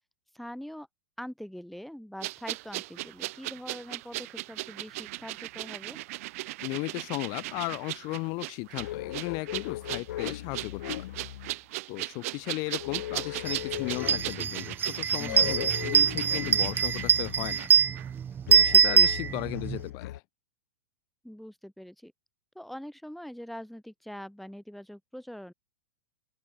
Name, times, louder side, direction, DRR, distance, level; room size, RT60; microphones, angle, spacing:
voice 1, 0.3-0.9 1.2-6.0 15.2-15.5 21.2-22.1 22.5-25.5, equal, ahead, 7.6 m, -43 dB
sound 1, 2.2-17.7 18.0-18.1, right 20 dB, 55° right, 5.4 m, -38 dB
voice 2, 6.6-10.8 11.9-17.7 18.5-20.2, left 28 dB, 45° left, 2.9 m, -35 dB
sound 2, 8.8-11.6 12.8-14.4 15.3-17.6 18.5-20.2, left 14 dB, 60° left, 6.5 m, -38 dB
sound 3, 13.5-13.6 13.9-19.8, right 8 dB, 20° right, 2.8 m, -23 dB
open air
figure-of-eight pair, 100°, 9 cm